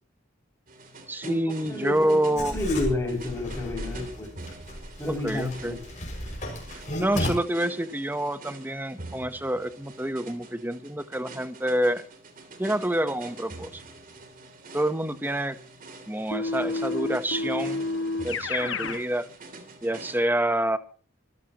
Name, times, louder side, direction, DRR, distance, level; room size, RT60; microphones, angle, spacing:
sound 1, 0.7-20.2, right 2 dB, 40° right, 3.2 m, -46 dB
voice 1, 1.1-2.6 5.0-5.8 6.7-12.0 12.6-13.8 14.7-15.6 16.1-17.8 18.2-19.3 19.8-20.8, right 1 dB, 10° right, 11 dB, 1.0 m, -27 dB
voice 2, 1.6-4.3 5.0-5.8, left 2 dB, 15° left, 0 dB, 6.5 m, -30 dB
Writing, 2.4-7.3, left 1 dB, 40° left, 6.2 m, -34 dB
Keyboard (musical), 16.3-19.0, left 3 dB, 60° left, 1.5 m, -29 dB
25.5 x 15.0 x 3.0 m, 0.40 s
head